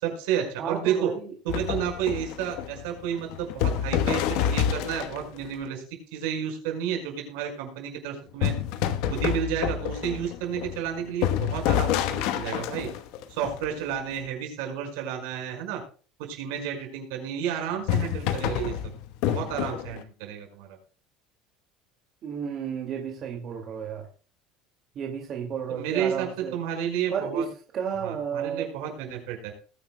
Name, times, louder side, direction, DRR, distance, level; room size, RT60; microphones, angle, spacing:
voice 1, 0.0-1.1 1.4-5.8 6.1-8.5 9.1-12.9 13.3-15.8 16.2-18.9 19.3-20.8 25.7-27.4 28.0-29.5, right 9 dB, 80° right, 3 dB, 5.0 m, -31 dB
voice 2, 0.6-1.3 22.2-24.1 25.0-26.6 27.1-28.7, right 7 dB, 30° right, 2 dB, 2.2 m, -32 dB
sound 1, 1.5-5.5 8.4-14.1 17.8-20.0, left 9 dB, 60° left, 1.1 m, -28 dB
20.0 x 9.9 x 2.2 m, 0.38 s
cardioid pair, 175°, 0 cm